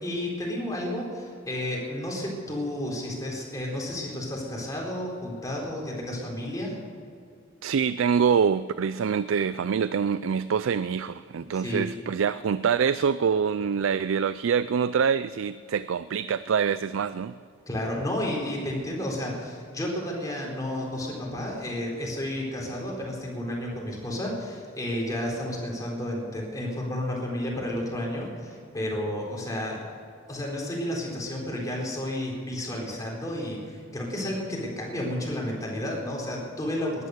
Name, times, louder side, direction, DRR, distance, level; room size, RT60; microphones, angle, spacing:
voice 1, 0.0-6.8 11.5-11.9 17.7-29.8 30.3-37.1, left 1 dB, 20° left, -2 dB, 4.1 m, -31 dB
voice 2, 7.6-17.4, right 6 dB, 90° right, 15 dB, 0.4 m, -25 dB
19.0 x 11.0 x 6.6 m, 2.3 s
head